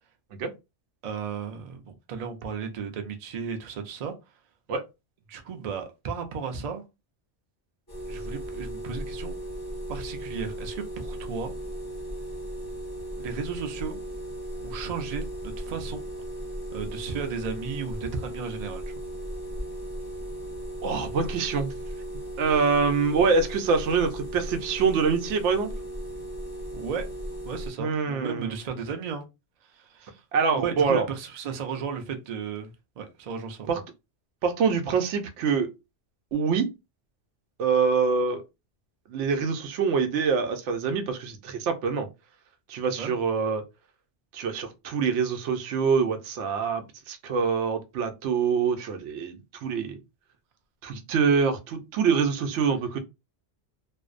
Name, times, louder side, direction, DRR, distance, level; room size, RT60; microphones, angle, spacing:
voice 1, 1.0-4.2 5.3-6.9 8.1-9.3 9.9-11.5 13.2-14.0 14.6-16.0 16.7-18.9 26.7-27.1 27.4-29.2 29.6-30.2 30.5-33.7 43.0-43.1, right 6 dB, 50° right, 0.5 m, -34 dB
sound 1, 7.9-27.7, right 1 dB, 25° left, 0.6 m, -36 dB
voice 2, 20.8-21.7 22.4-25.7 27.8-28.6 30.3-31.1 33.7-33.8 34.4-35.7 36.3-36.7 37.6-38.4 39.1-42.1 42.7-43.6 44.3-50.0 50.8-53.0, right 5 dB, 90° right, 0.9 m, -25 dB
2.5 x 2.0 x 2.4 m
omnidirectional pair, 1.2 m